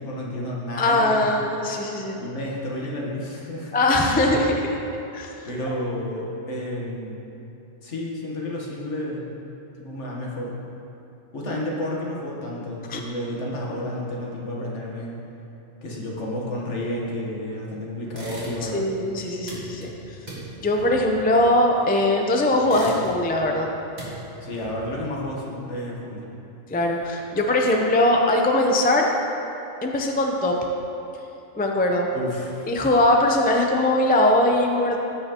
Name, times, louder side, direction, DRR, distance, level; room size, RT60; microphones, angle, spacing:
voice 1, 0.0-1.4 2.2-3.7 5.5-7.2 7.8-9.3 9.8-10.5 11.3-15.1 15.8-18.9 24.4-26.2 32.1-32.7, left 1 dB, 75° left, -3 dB, 1.6 m, -31 dB
voice 2, 0.8-2.2 3.7-4.7 5.1-5.3 12.9-13.0 18.7-19.9 20.6-23.7 26.7-29.1 29.8-30.5 31.6-32.1 32.7-35.0, left 1 dB, 15° left, 1 dB, 0.3 m, -21 dB
sound 1, 18.1-18.9 19.1-22.1 22.5-23.4 23.7-25.1, right 1 dB, 35° right, 1.9 m, -38 dB
15.0 x 5.6 x 2.9 m, 2.9 s
omnidirectional pair, 1.2 m